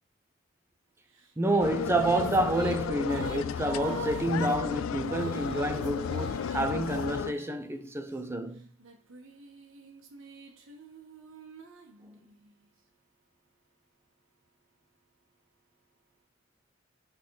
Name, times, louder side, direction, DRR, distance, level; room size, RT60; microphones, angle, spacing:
Female singing, 1.2-8.1 8.8-12.5, right 4 dB, 75° right, 1.7 m, -45 dB
voice 1, 1.4-8.7, right 1 dB, 10° right, 0.7 m, -29 dB
sound 1, 1.6-7.3, left 8 dB, 75° left, 0.3 m, -33 dB
8.2 x 4.2 x 4.9 m
head